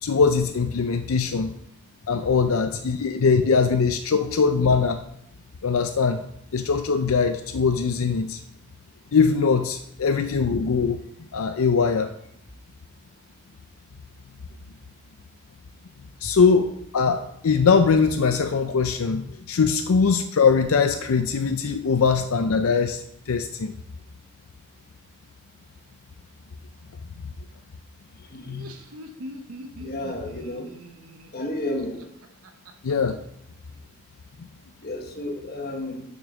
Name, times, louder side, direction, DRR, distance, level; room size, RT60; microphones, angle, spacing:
voice 1, 0.0-1.5 2.1-5.0 5.6-6.2 6.5-8.4 9.1-11.0 11.3-12.1 16.2-23.7 28.5-28.7 32.8-33.2, left 5 dB, 80° left, 8 dB, 0.5 m, -21 dB
Laughter, 28.3-32.9, equal, 90° right, 0.9 m, -42 dB
voice 2, 29.8-30.7 31.3-32.0 34.8-36.0, left 1 dB, 45° left, 2 dB, 1.4 m, -31 dB
6.9 x 6.1 x 6.2 m, 0.76 s
head